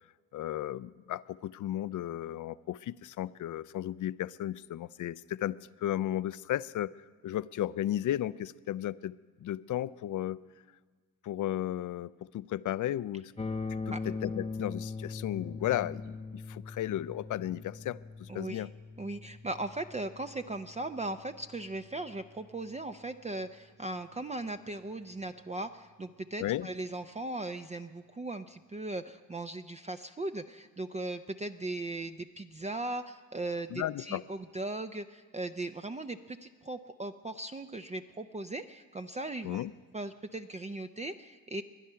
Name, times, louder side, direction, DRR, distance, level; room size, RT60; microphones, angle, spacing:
voice 1, 0.3-6.9 7.2-9.1 9.4-10.4 11.2-13.3 13.7-18.7 26.4-26.7 33.7-34.2 39.4-39.7, left 12 dB, 55° left, 18 dB, 0.5 m, -34 dB
sound 1, 13.4-23.3, left 4 dB, 15° left, 0.8 m, -42 dB
voice 2, 18.3-18.7 19.0-39.7 39.9-41.6, right 2 dB, 20° right, 7 dB, 0.5 m, -38 dB
21.0 x 10.5 x 5.7 m, 1.5 s
supercardioid pair, 65°, 38 cm